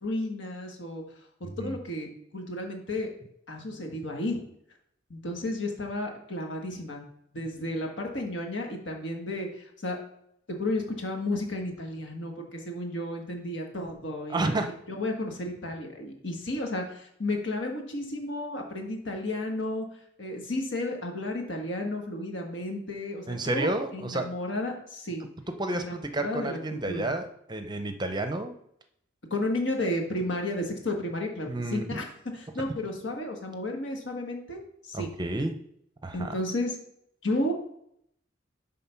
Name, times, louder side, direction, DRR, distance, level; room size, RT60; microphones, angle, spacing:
voice 1, 0.0-1.0 1.6-2.1 2.3-3.1 3.5-4.4 5.1-7.0 7.3-10.0 10.5-14.6 14.9-19.8 20.2-25.2 25.7-27.1 29.3-32.1 32.3-35.1 36.1-36.8 37.2-37.5, left 1 dB, 70° left, 2 dB, 1.6 m, -32 dB
voice 2, 14.3-14.7 23.3-24.3 25.6-28.6 31.5-32.0 34.9-35.6 36.0-36.3, right 2 dB, 25° right, 7 dB, 0.6 m, -30 dB
8.3 x 3.8 x 5.8 m, 0.73 s
head